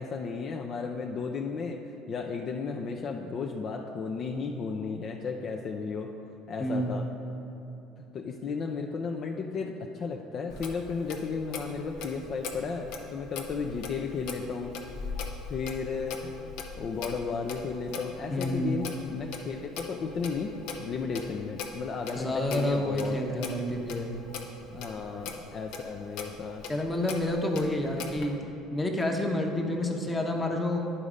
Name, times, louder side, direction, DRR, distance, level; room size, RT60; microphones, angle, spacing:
voice 1, 0.0-1.8 2.1-6.1 6.5-7.1 8.0-14.7 15.5-23.4 24.7-26.6 27.6-27.7, left 5 dB, 45° left, 2 dB, 0.5 m, -34 dB
voice 2, 6.6-7.0 18.3-18.8 22.1-24.1 26.7-28.4 28.7-30.8, left 1 dB, 15° left, 2 dB, 1.0 m, -29 dB
Clock, 10.5-28.3, left 4 dB, 75° left, 0.8 m, -41 dB
9.9 x 4.1 x 5.0 m, 3.0 s
supercardioid pair, 100°, 0 cm